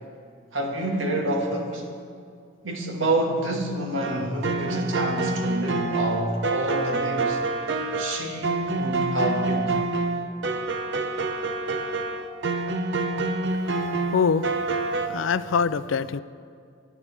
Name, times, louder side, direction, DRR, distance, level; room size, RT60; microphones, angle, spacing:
voice 1, 0.5-1.9 2.6-7.4 8.0-9.8, right 1 dB, 90° right, 1 dB, 1.9 m, -28 dB
sound 1, 4.0-15.1, right 3 dB, 65° right, 0.8 m, -27 dB
voice 2, 13.6-14.5 15.0-16.2, left 6 dB, 80° left, 16 dB, 0.4 m, -25 dB
25.0 x 9.8 x 3.6 m, 2.3 s
head